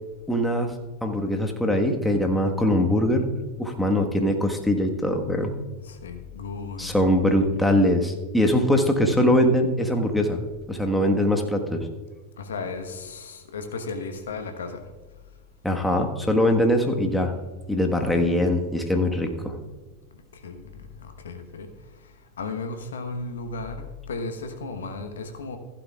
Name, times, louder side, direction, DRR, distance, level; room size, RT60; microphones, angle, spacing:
voice 1, 0.3-0.7 1.0-3.3 3.6-5.5 6.8-10.4 10.7-11.9 15.6-17.3 17.7-19.6, left 1 dB, 5° left, 2 dB, 1.4 m, -22 dB
voice 2, 5.7-6.9 12.4-14.8 20.3-21.7 22.4-25.6, left 3 dB, 75° left, 7 dB, 1.1 m, -35 dB
15.0 x 11.5 x 2.4 m, 1.3 s
figure-of-eight pair, 85°, 0 cm